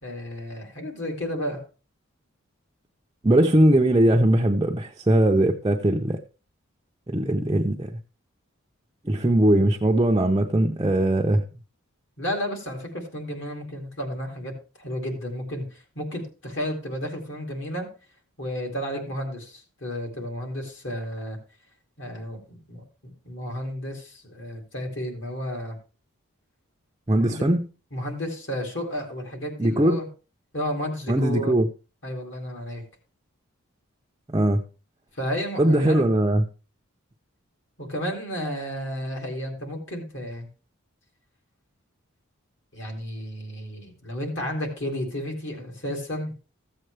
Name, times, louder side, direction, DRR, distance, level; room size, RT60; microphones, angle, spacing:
voice 1, 0.0-1.6 12.2-14.5 14.8-17.9 18.4-21.4 22.0-25.8 27.1-27.4 27.9-30.1 30.5-31.5 32.0-32.8 35.1-36.1 37.8-40.5 42.7-46.3, equal, 55° left, 2.6 m, -32 dB
voice 2, 3.2-6.2 7.1-7.9 9.0-11.4 27.1-27.7 29.6-30.0 31.1-31.7 34.3-34.6 35.6-36.4, right 1 dB, 20° right, 0.5 m, -20 dB
14.0 x 7.7 x 3.3 m
head